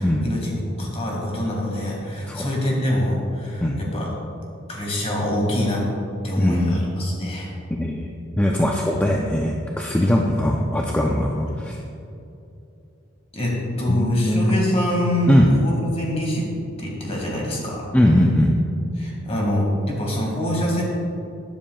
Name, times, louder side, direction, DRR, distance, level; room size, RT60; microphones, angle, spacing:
voice 1, 0.0-4.1 4.7-5.9 6.2-7.5 10.2-10.3 13.3-16.5 16.8-17.9 18.9-20.8, left 1 dB, 30° left, -2 dB, 2.0 m, -25 dB
voice 2, 6.4-6.8 7.8-8.1 8.4-11.8 13.9-14.5 15.3-15.5 17.9-18.5, left 1 dB, 10° left, -1 dB, 0.5 m, -20 dB
12.5 x 10.0 x 2.3 m, 2.7 s
head